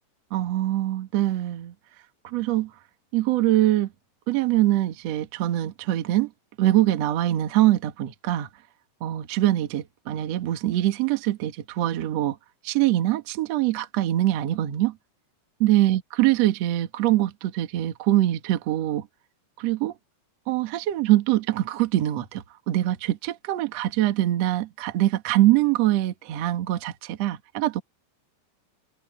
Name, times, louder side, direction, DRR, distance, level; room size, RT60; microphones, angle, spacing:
voice 1, 0.3-1.7 2.2-2.7 3.1-3.9 4.3-6.3 6.6-8.5 9.0-12.4 12.6-14.9 15.6-19.1 19.6-19.9 20.5-27.8, right 14 dB, 65° right, 1.6 m, -23 dB
omnidirectional pair, 5.1 m